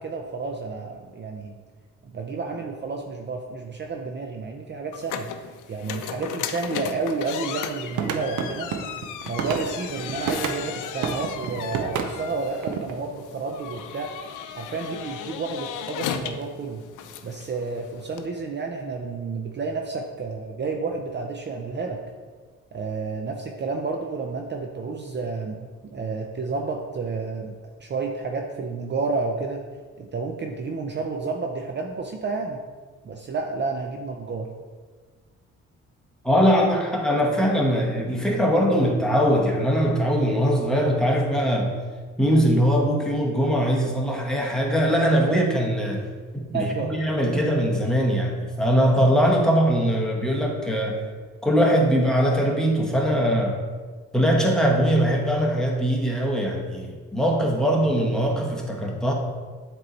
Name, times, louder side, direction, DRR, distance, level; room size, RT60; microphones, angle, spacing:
voice 1, 0.0-1.6 2.1-5.3 5.7-8.7 9.3-14.1 14.5-16.8 17.2-22.0 22.7-25.7 25.9-27.5 27.8-29.6 30.0-32.6 33.0-34.5 46.5-46.9 47.3-47.5, right 4 dB, 35° right, 2 dB, 0.6 m, -30 dB
sound 1, 4.9-18.3, left 9 dB, 85° left, 0.5 m, -36 dB
sound 2, 7.9-10.6 11.0-12.9, right 7 dB, 85° right, 0.6 m, -30 dB
voice 2, 36.2-41.7 42.2-46.0 46.3-46.7 47.0-51.1 51.4-53.6 54.1-59.1, equal, ahead, -2 dB, 1.1 m, -21 dB
7.6 x 3.1 x 4.0 m, 1.5 s
cardioid pair, 90°, 30 cm